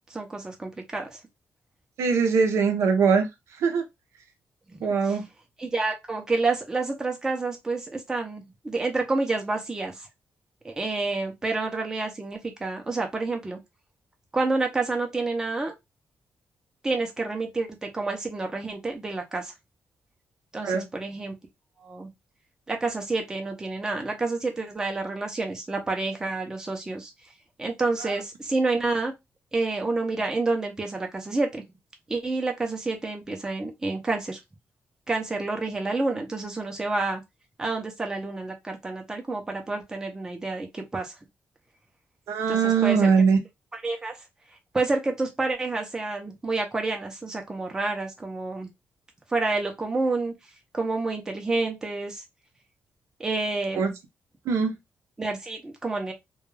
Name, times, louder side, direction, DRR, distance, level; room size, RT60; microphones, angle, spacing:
voice 1, 0.1-1.2 4.7-4.9 5.6-10.1 10.6-13.6 14.3-15.7 16.8-19.5 20.5-21.4 21.8-22.1 22.7-27.1 27.6-29.1 29.5-31.6 32.1-34.4 35.1-37.2 37.6-41.1 42.5-43.1 43.8-44.2 44.7-48.7 49.3-50.3 50.7-52.2 53.2-53.9 55.2-56.1, right 3 dB, 15° right, 0.5 m, -29 dB
voice 2, 2.0-3.3 3.5-3.8 4.8-5.2 20.6-20.8 28.0-28.1 42.3-43.4 53.8-53.9 54.5-54.7, right 5 dB, 80° right, 0.6 m, -21 dB
2.2 x 2.2 x 3.1 m
wide cardioid pair, 180°, 5 cm